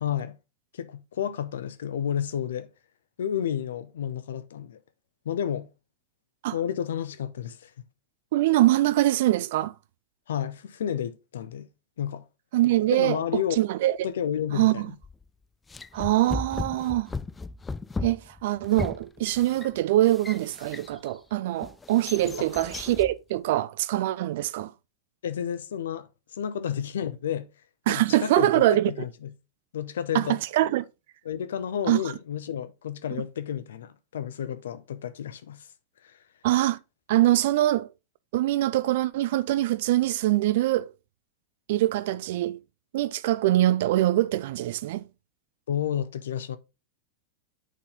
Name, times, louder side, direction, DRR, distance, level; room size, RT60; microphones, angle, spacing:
voice 1, 0.0-0.4 0.7-2.7 3.2-4.8 5.2-5.7 6.5-7.7 10.3-11.7 12.0-12.2 12.9-13.6 14.0-14.9 22.2-22.5 25.2-27.5 27.9-29.3 29.7-30.4 31.2-35.7 36.0-36.1 45.7-46.6, left 9 dB, 60° left, 0.7 m, -31 dB
voice 2, 8.3-9.7 12.5-14.0 14.5-14.9 15.9-17.1 18.0-24.7 27.9-28.9 30.1-30.8 31.9-32.0 36.4-36.8 37.1-37.9 38.3-40.9 41.7-42.6 42.9-45.1, right 15 dB, 55° right, 0.4 m, -23 dB
sound 1, 15.0-15.3 15.7-21.1 21.6-23.2, left 3 dB, 15° left, 0.3 m, -36 dB
9.1 x 4.1 x 3.6 m
figure-of-eight pair, 90°, 0 cm